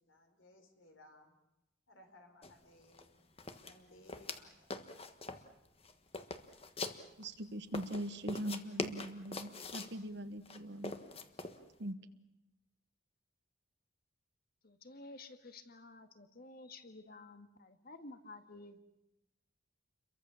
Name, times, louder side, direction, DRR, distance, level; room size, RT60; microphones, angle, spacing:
voice 1, 0.0-1.4 1.9-3.1 3.6-4.8, left 1 dB, 70° left, 5 dB, 4.7 m, -61 dB
sound 1, 2.4-2.5 2.8-3.1 3.4-4.4 4.7-5.5 5.8-7.3 7.7-10.0 10.5-11.6, left 3 dB, 30° left, 1.4 m, -43 dB
voice 2, 7.2-11.0 11.8-12.0, right 1 dB, 55° right, 9 dB, 1.3 m, -41 dB
voice 3, 14.6-18.8, left 2 dB, 45° left, 8 dB, 1.9 m, -52 dB
30.0 x 23.0 x 7.1 m, 0.89 s
head